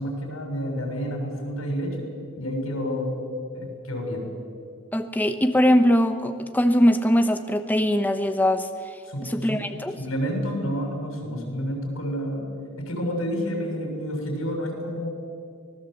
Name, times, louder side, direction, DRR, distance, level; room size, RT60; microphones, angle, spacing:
voice 1, 0.0-3.1 3.5-4.2 9.1-9.6 10.0-12.4 12.8-15.1, equal, 90° left, 2 dB, 6.7 m, -29 dB
voice 2, 4.9-8.7 9.2-10.0, equal, 10° left, 7 dB, 0.9 m, -21 dB
25.0 x 19.5 x 7.9 m, 2.2 s
head